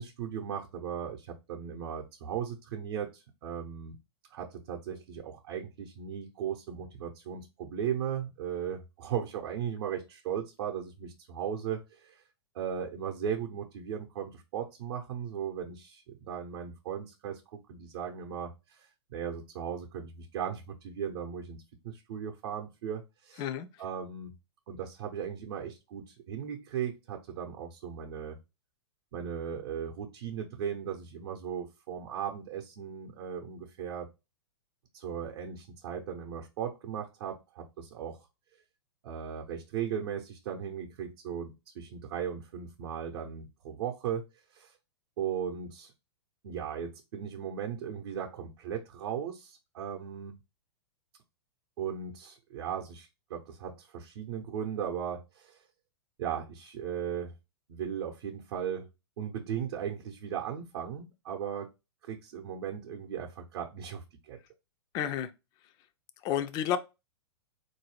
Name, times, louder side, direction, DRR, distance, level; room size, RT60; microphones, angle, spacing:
voice 1, 0.0-3.9 4.3-12.2 12.5-23.4 23.8-24.3 24.7-28.4 29.1-34.1 34.9-38.3 39.0-44.3 44.5-44.7 45.2-45.9 46.4-50.3 51.8-55.6 56.2-57.3 57.7-58.9 59.2-61.7 62.0-64.4, right 8 dB, 55° right, 0.7 m, -37 dB
voice 2, 64.9-65.3 66.2-66.8, left 10 dB, 30° left, 0.4 m, -30 dB
3.9 x 2.6 x 3.1 m
hypercardioid pair, 115°, 14 cm